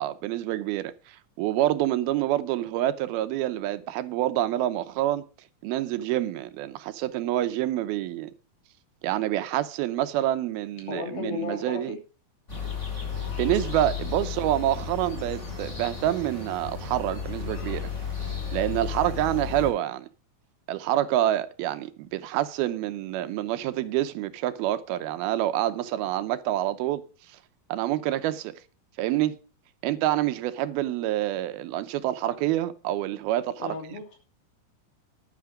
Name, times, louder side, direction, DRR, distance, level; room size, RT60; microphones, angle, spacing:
voice 1, 0.0-5.2 5.6-8.3 9.0-11.9 13.4-17.8 18.5-20.1 20.7-27.0 27.7-28.5 29.0-29.4 29.8-33.8, right 13 dB, 85° right, 2.7 m, -27 dB
voice 2, 10.9-12.0 33.6-34.2, left 4 dB, 75° left, 4.7 m, -34 dB
sound 1, 12.5-19.7, left 6 dB, 20° left, 4.8 m, -33 dB
11.0 x 9.4 x 5.1 m
omnidirectional pair, 4.3 m